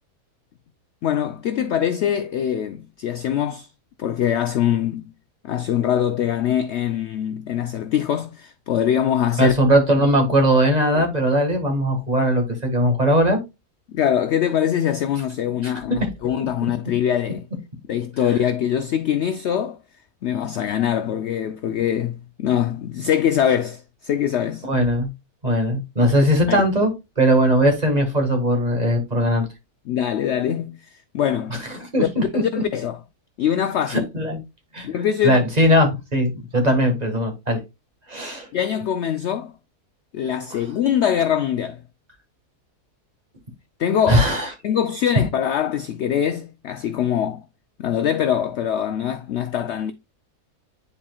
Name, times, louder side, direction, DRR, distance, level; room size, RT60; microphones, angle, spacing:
voice 1, 1.0-3.7 4.0-5.0 5.4-9.5 13.9-17.4 17.9-19.8 20.2-24.7 26.5-26.6 29.9-31.6 32.0-33.0 33.4-34.0 34.8-35.4 38.5-39.5 40.1-41.8 43.8-44.2 44.6-47.4 47.8-49.9, left 9 dB, 70° left, 0.6 m, -23 dB
voice 2, 9.4-13.4 15.6-15.7 16.4-16.7 18.2-18.4 24.6-25.1 25.4-29.5 31.5-32.4 33.9-34.4 34.7-34.9 35.2-37.6 38.1-38.5 40.5-40.6 44.1-44.5, equal, 25° right, 1.7 m, -19 dB
10.0 x 4.3 x 2.3 m
omnidirectional pair, 1.6 m